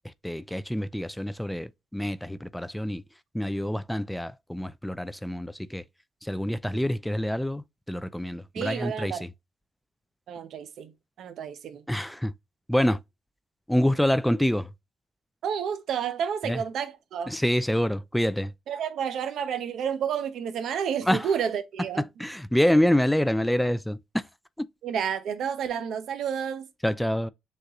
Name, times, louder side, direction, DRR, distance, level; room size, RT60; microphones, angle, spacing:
voice 1, 0.2-3.0 3.3-5.8 6.2-9.3 11.9-12.3 12.7-13.0 13.7-14.7 16.4-16.6 17.3-18.5 21.1-21.3 22.0-24.0 26.8-27.3, left 1 dB, 5° left, 0.3 m, -26 dB
voice 2, 8.5-9.2 10.3-10.9 11.2-11.8 15.4-17.3 18.7-22.0 24.8-26.7, right 8 dB, 75° right, 0.7 m, -30 dB
6.4 x 2.4 x 2.9 m
cardioid pair, 90°, 0 cm